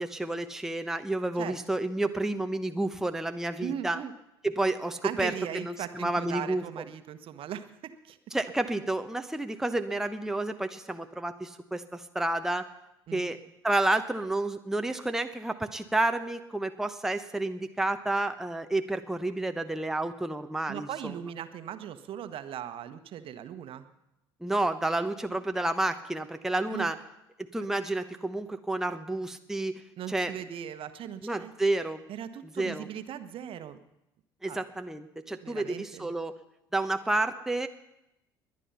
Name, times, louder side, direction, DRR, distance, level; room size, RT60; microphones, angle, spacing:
voice 1, 0.0-4.0 4.4-6.8 8.3-12.7 13.1-13.4 13.6-21.1 24.4-27.0 27.5-29.8 30.1-30.3 31.2-32.0 32.6-32.9 34.4-36.3 36.7-37.7, right 2 dB, 5° right, 7 dB, 1.0 m, -30 dB
voice 2, 3.6-4.1 5.0-7.6 8.0-8.2 13.1-13.3 20.7-23.8 26.7-26.9 30.0-31.5 32.1-33.8 34.5-34.7 35.4-36.1, right 10 dB, 50° right, 11 dB, 1.3 m, -38 dB
21.5 x 10.0 x 5.7 m, 0.88 s
figure-of-eight pair, 60°, 12 cm